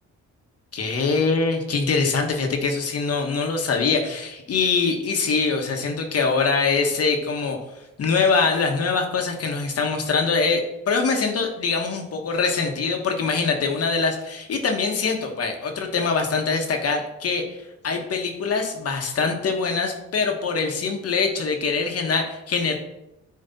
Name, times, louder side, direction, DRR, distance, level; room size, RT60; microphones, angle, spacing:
voice 1, 0.7-7.6 8.0-17.4 17.8-22.7, left 4 dB, 50° left, 4 dB, 1.2 m, -23 dB
9.2 x 3.2 x 4.0 m, 0.92 s
cardioid pair, 90°, 30 cm